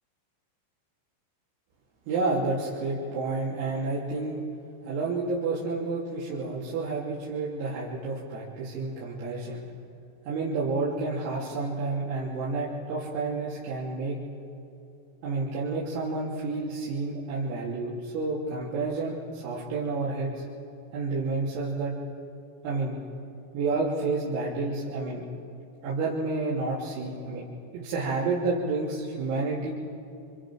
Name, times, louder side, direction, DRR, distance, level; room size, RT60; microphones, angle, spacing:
voice 1, 2.1-4.4 4.9-9.6 10.3-14.2 15.2-20.5 20.9-22.0 22.6-23.0 23.5-25.2 25.8-27.5 27.7-29.7, right 3 dB, 90° right, -8 dB, 5.7 m, -30 dB
29.5 x 27.5 x 6.2 m, 2.8 s
omnidirectional pair, 5.9 m